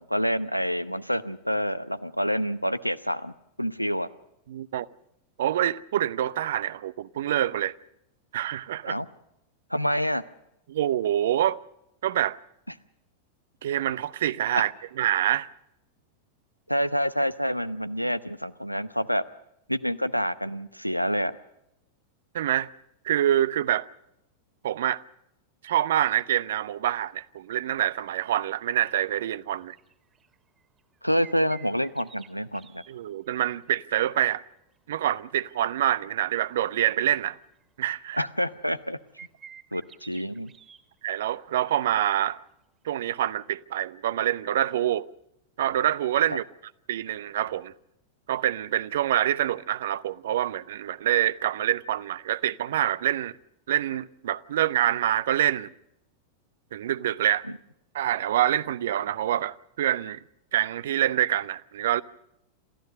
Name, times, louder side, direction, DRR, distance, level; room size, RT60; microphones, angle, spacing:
voice 1, 0.0-3.3 3.6-4.1 8.9-9.1 9.7-10.2 14.6-14.7 16.7-19.2 19.7-21.4 31.0-32.8 38.2-39.0 39.7-40.5 46.3-46.4, equal, 90° left, 0.8 m, -27 dB
voice 2, 4.5-4.9 5.4-7.7 8.3-8.9 10.7-11.6 12.0-12.4 13.6-15.5 22.3-22.7 23.0-23.8 24.6-25.0 25.6-29.7 32.9-34.4 34.9-37.4 37.8-38.2 41.0-42.4 42.8-45.1 45.6-46.4 46.9-47.7 48.3-53.3 53.7-55.7 56.7-57.5 57.9-60.2 60.5-62.0, right 12 dB, 60° right, 0.7 m, -26 dB
sound 1, 26.2-26.3 27.1-27.2 27.7-28.0 28.3-28.4 28.7-28.9 29.3-32.9 33.3-34.1 34.6-36.0 36.4-36.5 36.7-37.9 38.4-38.5 38.7-40.8 42.2-42.3 43.0-43.1, right 7 dB, 25° right, 2.3 m, -52 dB
27.5 x 15.0 x 6.5 m
figure-of-eight pair, 90°, 0 cm